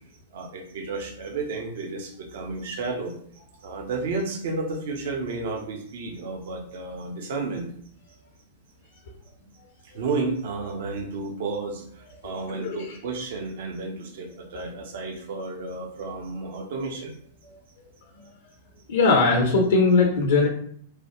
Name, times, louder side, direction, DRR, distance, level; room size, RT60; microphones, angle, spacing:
voice 1, 0.3-3.2 3.6-7.7 9.8-17.2, right 3 dB, 55° right, 3 dB, 0.6 m, -32 dB
voice 2, 12.5-12.9 18.9-20.5, left 3 dB, 65° left, 0 dB, 0.6 m, -20 dB
3.2 x 2.2 x 2.9 m, 0.62 s
figure-of-eight pair, 100°, 0 cm